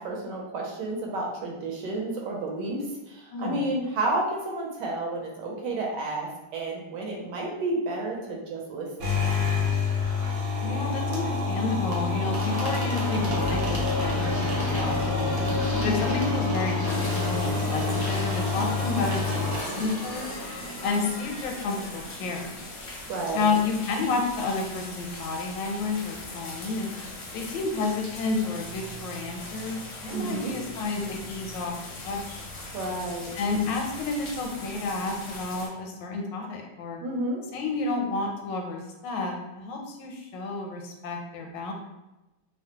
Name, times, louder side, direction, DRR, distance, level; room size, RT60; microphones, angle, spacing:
voice 1, 0.0-9.2 15.7-15.9 23.1-23.5 30.1-30.5 32.7-33.3 37.0-37.4, right 2 dB, 75° right, -1 dB, 1.2 m, -31 dB
voice 2, 3.3-3.7 10.6-15.4 15.8-20.3 20.8-22.6 23.3-26.9 27.3-31.7 32.0-32.4 33.3-37.0 37.5-41.7, left 3 dB, 85° left, 2 dB, 1.3 m, -30 dB
sound 1, 9.0-20.4, left 4 dB, 55° right, 0.9 m, -28 dB
sound 2, 11.6-23.1, equal, 30° left, 0.3 m, -33 dB
sound 3, 16.9-35.7, left 2 dB, 65° left, 0.7 m, -40 dB
3.1 x 2.0 x 2.8 m, 1.0 s
omnidirectional pair, 2.0 m